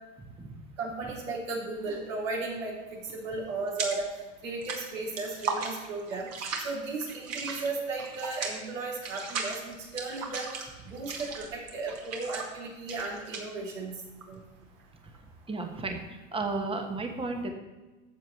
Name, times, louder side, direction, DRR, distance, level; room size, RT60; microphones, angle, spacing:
voice 1, 0.8-4.1 4.4-6.3 6.6-10.5 10.8-14.0 14.3-14.4, right 3 dB, 75° right, -3 dB, 3.4 m, -35 dB
sound 1, 1.8-2.1 2.4-4.2 4.4-16.0, right 4 dB, 40° right, 2.1 m, -37 dB
voice 2, 15.5-17.5, right 3 dB, 15° right, 4 dB, 1.4 m, -33 dB
14.0 x 7.4 x 3.3 m, 1.2 s
hypercardioid pair, 90°, 39 cm